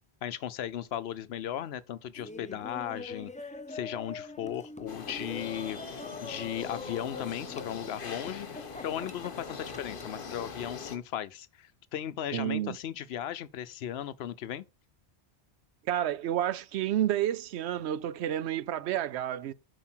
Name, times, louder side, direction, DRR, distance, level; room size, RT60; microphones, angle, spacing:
voice 1, 0.2-14.6, left 10 dB, 75° left, 0.8 m, -37 dB
Laughter, 2.1-10.2, left 3 dB, 10° left, 0.4 m, -44 dB
sound 1, 4.9-11.0, left 5 dB, 55° left, 1.2 m, -42 dB
voice 2, 12.3-12.8 15.9-19.5, right 11 dB, 80° right, 0.8 m, -30 dB
7.3 x 5.2 x 4.4 m
omnidirectional pair, 1.1 m